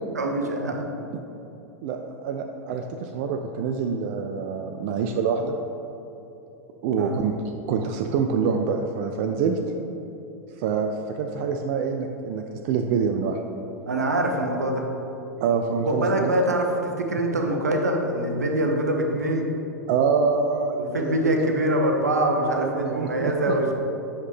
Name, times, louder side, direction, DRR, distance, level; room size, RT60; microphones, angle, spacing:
voice 1, 0.1-0.9 7.0-7.2 13.9-14.8 15.9-19.5 20.8-23.7, right 1 dB, 75° right, 2 dB, 0.8 m, -24 dB
voice 2, 1.8-5.6 6.8-7.4 7.7-9.6 10.6-13.4 15.4-16.3 19.9-21.5 22.5-23.6, right 5 dB, 45° right, 5 dB, 0.4 m, -26 dB
8.0 x 5.8 x 3.4 m, 2.9 s
figure-of-eight pair, 90°, 9 cm